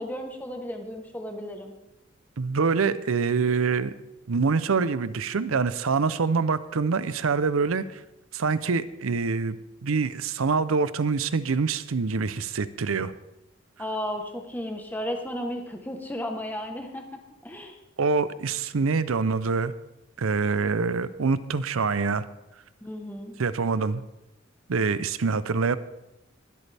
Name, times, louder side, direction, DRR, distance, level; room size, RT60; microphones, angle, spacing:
voice 1, 0.0-1.7 13.8-17.8 22.8-23.3, equal, 10° left, 3 dB, 1.1 m, -34 dB
voice 2, 2.4-3.9 4.3-8.0 8.3-9.6 9.8-13.1 18.0-19.7 20.2-22.3 23.4-24.0 24.7-25.8, right 4 dB, 85° right, 15 dB, 0.6 m, -25 dB
22.0 x 8.3 x 3.4 m, 0.92 s
head